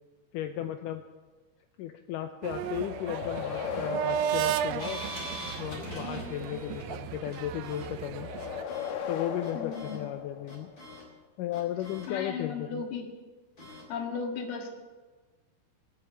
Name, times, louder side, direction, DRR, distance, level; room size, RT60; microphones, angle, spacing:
voice 1, 0.3-1.0 1.8-5.0 5.6-8.3 9.1-10.7 11.4-12.9, left 11 dB, 80° left, 7 dB, 1.9 m, -35 dB
sound 1, 2.4-8.6, right 11 dB, 80° right, 2.3 m, -34 dB
sound 2, 2.8-5.6 8.1-10.9, left 7 dB, 65° left, 2.0 m, -37 dB
sound 3, 4.8-6.9 7.3-7.9 8.4-8.9 9.4-10.0 10.5-11.0 11.5-12.1 13.6-13.8, equal, 25° left, 3.7 m, -42 dB
voice 2, 9.5-10.0 12.1-13.1 13.9-14.7, left 5 dB, 45° left, 2 dB, 2.1 m, -35 dB
20.0 x 7.4 x 9.1 m, 1.3 s
omnidirectional pair, 4.5 m